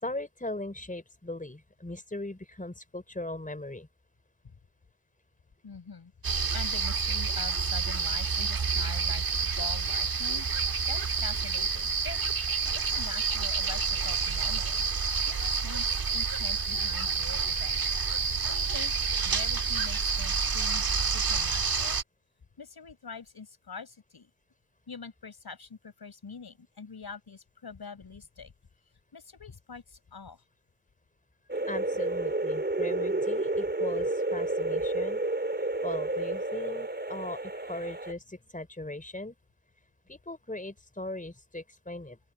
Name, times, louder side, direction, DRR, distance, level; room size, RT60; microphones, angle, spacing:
voice 1, 0.0-3.9 31.7-35.2 35.6-39.4 40.1-42.2, left 2 dB, 20° left, 5.3 m, -39 dB
voice 2, 5.6-12.5 12.9-17.9 18.5-18.9 19.2-22.0 22.6-24.3 24.9-28.5 29.1-30.4, left 5 dB, 75° left, 6.1 m, -45 dB
sound 1, 6.2-22.0, right 5 dB, 65° right, 1.9 m, -29 dB
sound 2, 31.5-38.1, right 2 dB, 25° right, 4.4 m, -30 dB
open air
cardioid pair, 60°, 38 cm